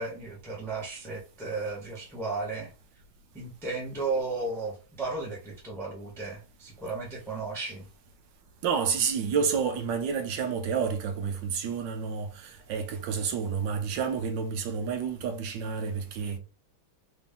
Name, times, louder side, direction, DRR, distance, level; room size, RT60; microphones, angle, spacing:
voice 1, 0.0-2.7 3.3-7.9, right 3 dB, ahead, 0.8 m, -34 dB
voice 2, 8.6-16.4, right 6 dB, 70° right, 1.2 m, -29 dB
4.0 x 2.6 x 3.6 m
omnidirectional pair, 2.4 m